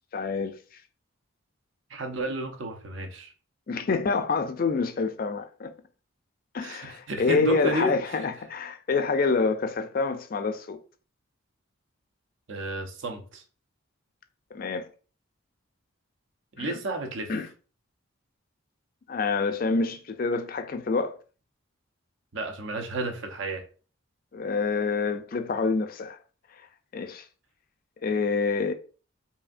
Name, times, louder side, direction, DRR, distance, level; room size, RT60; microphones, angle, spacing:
voice 1, 0.1-0.6 3.7-5.7 6.5-10.8 14.5-14.9 16.6-16.8 17.3-17.5 19.1-21.2 24.3-26.2 26.9-27.2 28.0-28.7, left 4 dB, 45° left, 0.3 m, -27 dB
voice 2, 1.9-3.3 6.6-8.0 12.5-13.4 16.6-17.4 22.3-23.7, right 1 dB, 60° right, 0.7 m, -32 dB
4.9 x 2.7 x 2.5 m
head